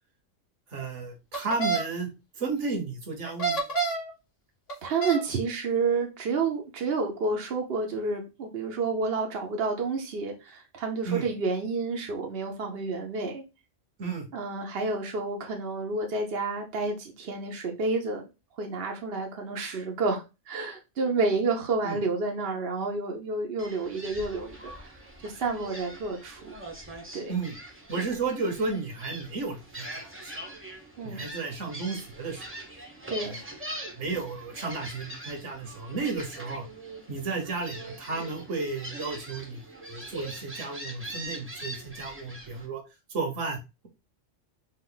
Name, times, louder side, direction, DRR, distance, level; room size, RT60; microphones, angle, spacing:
voice 1, 0.7-2.1 2.4-3.6 11.0-11.2 14.0-14.3 21.8-22.0 27.3-27.5 27.9-30.5 31.0-32.4 33.2-33.4 33.9-36.7 37.1-42.8 43.1-43.6, right 4 dB, 70° right, 1.4 m, -33 dB
sound 1, 1.3-1.8 3.3-4.1 4.7-5.2, right 4 dB, 70° left, 2.0 m, -28 dB
voice 2, 4.8-13.4 14.3-18.2 18.6-26.5 27.1-27.3 31.0-31.2 33.1-33.4, right 3 dB, 55° right, 0.9 m, -30 dB
Gull seagull, 23.6-42.7, right 1 dB, 10° right, 0.8 m, -42 dB
4.4 x 2.5 x 3.8 m
omnidirectional pair, 1.3 m